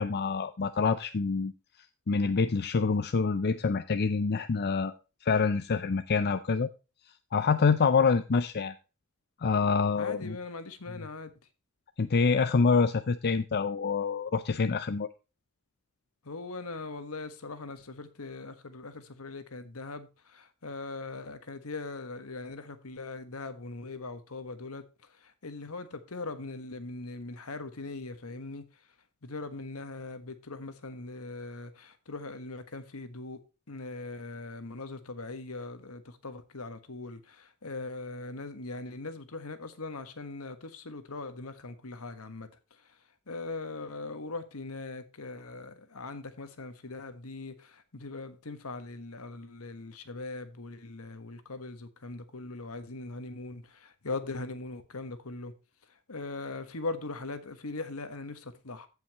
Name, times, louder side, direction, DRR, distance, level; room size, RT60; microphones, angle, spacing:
voice 1, 0.0-1.5 1.8-4.9 5.2-6.7 7.3-8.7 9.4-10.4 12.0-15.1, left 5 dB, 50° left, 0.5 m, -26 dB
voice 2, 10.0-11.3 16.2-28.9 29.2-33.4 33.7-55.5 55.9-58.9, left 3 dB, 70° left, 1.4 m, -40 dB
15.5 x 5.7 x 3.0 m
head